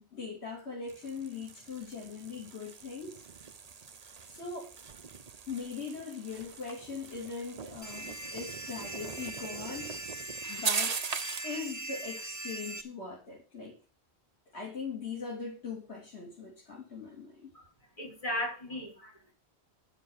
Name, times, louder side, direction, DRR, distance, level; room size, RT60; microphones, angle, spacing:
voice 1, 0.0-3.2 4.3-4.7 5.5-9.9 10.5-11.0 11.4-13.8 14.5-17.5, left 5 dB, 80° left, 3.2 m, -40 dB
sound 1, 0.9-11.6, right 5 dB, 40° right, 0.8 m, -40 dB
sound 2, 7.8-12.8, right 2 dB, 15° right, 1.4 m, -41 dB
voice 2, 18.0-19.3, left 1 dB, 35° left, 6.3 m, -36 dB
10.5 x 7.3 x 7.2 m
omnidirectional pair, 1.1 m